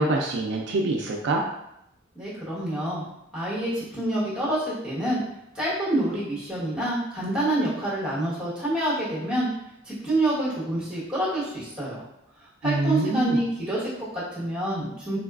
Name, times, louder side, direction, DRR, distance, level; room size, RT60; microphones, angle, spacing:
voice 1, 0.0-1.4 12.6-13.4, right 2 dB, 60° right, 0 dB, 0.3 m, -25 dB
voice 2, 2.1-3.0 3.3-5.2 5.5-9.5 9.8-12.0 12.6-15.2, right 1 dB, 5° right, -8 dB, 1.1 m, -27 dB
3.8 x 2.3 x 2.4 m, 0.82 s
head